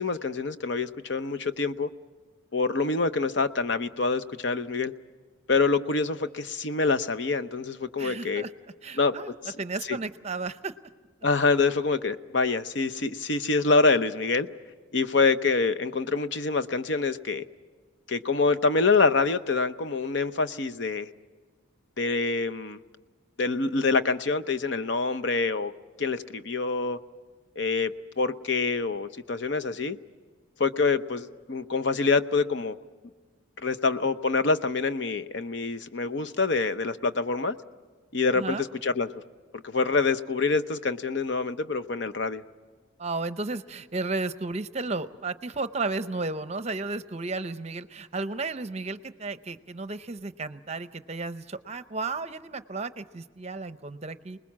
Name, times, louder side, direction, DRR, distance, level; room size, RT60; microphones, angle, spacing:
voice 1, 0.0-1.9 2.5-4.9 5.5-8.4 9.0-9.1 9.9-10.0 11.2-14.5 14.9-17.4 18.1-21.1 22.0-22.8 23.4-25.7 26.0-27.0 27.6-30.0 30.6-32.8 33.6-37.6 38.1-39.1 39.6-42.4, left 4 dB, 60° left, 11 dB, 0.7 m, -26 dB
voice 2, 8.0-8.5 8.8-9.3 9.6-10.7 38.3-38.6 43.0-54.4, right 3 dB, 30° right, 12 dB, 0.7 m, -33 dB
29.0 x 20.5 x 7.4 m, 1.4 s
head